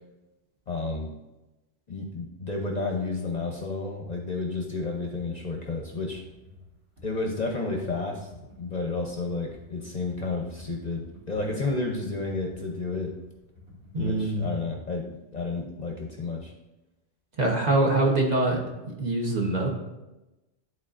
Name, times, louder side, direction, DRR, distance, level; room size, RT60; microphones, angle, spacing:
voice 1, 0.7-1.1 1.9-6.2 7.0-8.3 8.6-13.1 14.0-16.5, left 3 dB, 40° left, 1 dB, 0.7 m, -31 dB
Computer keyboard, 4.7-14.2, left 2 dB, 70° right, 2.6 m, -50 dB
voice 2, 13.9-14.5 17.4-18.6 18.9-19.7, right 2 dB, 40° right, -1 dB, 1.0 m, -24 dB
11.0 x 4.0 x 2.5 m, 1.0 s
omnidirectional pair, 1.2 m